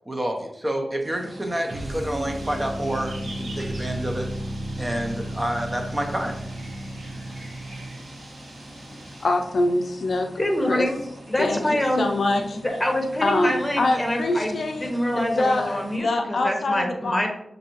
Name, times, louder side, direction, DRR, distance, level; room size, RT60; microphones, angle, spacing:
voice 1, 0.1-4.3 4.8-6.4, right 1 dB, 25° right, 3 dB, 0.7 m, -28 dB
sound 1, 1.0-16.0, right 1 dB, 60° right, 1.3 m, -45 dB
sound 2, 1.7-8.1, right 1 dB, 40° right, 1.2 m, -33 dB
sound 3, 2.3-9.3, right 2 dB, 90° right, 1.2 m, -45 dB
voice 2, 9.2-10.3 10.7-10.9 11.4-12.6 13.2-17.2, left 2 dB, 75° left, 4 dB, 0.4 m, -24 dB
voice 3, 10.4-11.0 11.3-12.0 12.6-17.3, left 1 dB, 20° left, 2 dB, 1.1 m, -25 dB
6.5 x 2.7 x 3.0 m, 0.78 s
cardioid pair, 60°, 0 cm